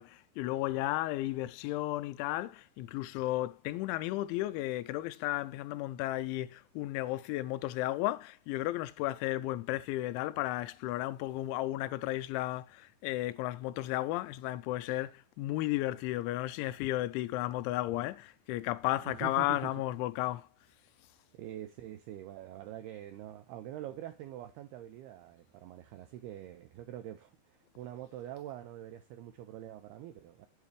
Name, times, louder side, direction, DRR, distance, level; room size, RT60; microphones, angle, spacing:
voice 1, 0.0-20.5, left 16 dB, 85° left, 3.0 m, -34 dB
voice 2, 19.0-19.7 21.3-30.5, right 12 dB, 80° right, 2.3 m, -45 dB
9.4 x 9.3 x 3.3 m
omnidirectional pair, 5.4 m